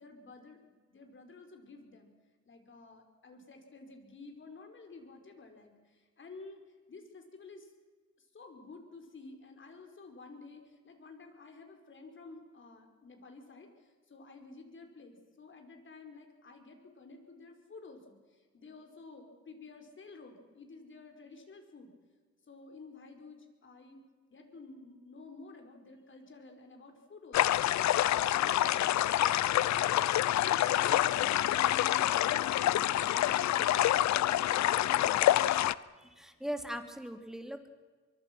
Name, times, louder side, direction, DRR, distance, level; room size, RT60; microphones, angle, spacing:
voice 1, 0.0-2.1 2.4-7.7 8.2-21.9 22.5-24.0 24.3-27.6 29.7-30.2 30.6-33.2, left 3 dB, 40° left, 4 dB, 5.3 m, -52 dB
sound 1, 27.3-35.7, left 13 dB, 65° left, 0.7 m, -27 dB
voice 2, 36.0-37.7, equal, ahead, 6 dB, 3.0 m, -40 dB
23.5 x 23.5 x 6.2 m, 1.4 s
cardioid pair, 90°, 30 cm